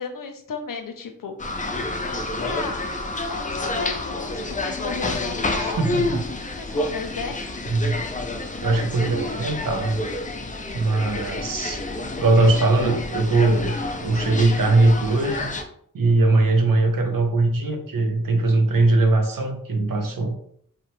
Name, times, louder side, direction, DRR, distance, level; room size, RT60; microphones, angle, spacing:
voice 1, 0.0-1.3 2.4-2.9 3.3-6.2 6.6-7.6 11.7-11.8, left 5 dB, 75° left, 5 dB, 0.5 m, -34 dB
sound 1, 1.4-15.6, left 2 dB, 25° left, 0.4 m, -29 dB
voice 2, 5.6-6.2 7.7-8.0 8.6-10.0 10.7-11.8 12.2-13.8 14.0-15.5 15.9-20.3, right 2 dB, 80° right, 4 dB, 0.6 m, -20 dB
2.8 x 2.1 x 3.0 m, 0.64 s
wide cardioid pair, 45°, 33 cm